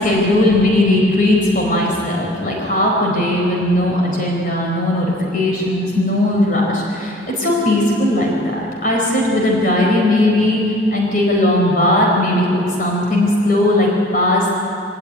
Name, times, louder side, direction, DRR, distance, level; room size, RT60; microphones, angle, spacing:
voice 1, 0.0-14.6, left 1 dB, 50° left, -1 dB, 4.3 m, -17 dB
23.5 x 18.0 x 9.9 m, 2.6 s
head